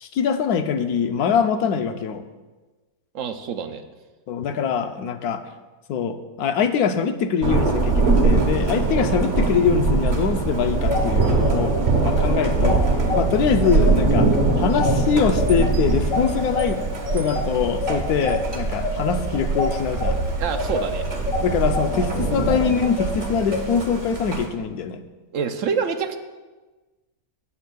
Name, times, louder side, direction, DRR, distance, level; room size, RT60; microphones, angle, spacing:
voice 1, 0.0-2.2 4.3-5.4 5.9-11.7 12.0-12.9 13.1-14.3 14.6-16.8 17.1-20.2 21.4-25.0, left 6 dB, 80° left, 8 dB, 1.1 m, -23 dB
voice 2, 3.1-3.8 20.4-21.0 25.3-26.2, right 6 dB, 65° right, 8 dB, 0.9 m, -26 dB
Thunder, 7.4-24.5, right 3 dB, 45° right, 1.3 m, -22 dB
sound 1, 10.7-20.1 20.5-23.6, left 4 dB, 40° left, 2.3 m, -28 dB
18.0 x 7.2 x 2.3 m, 1.2 s
omnidirectional pair, 1.6 m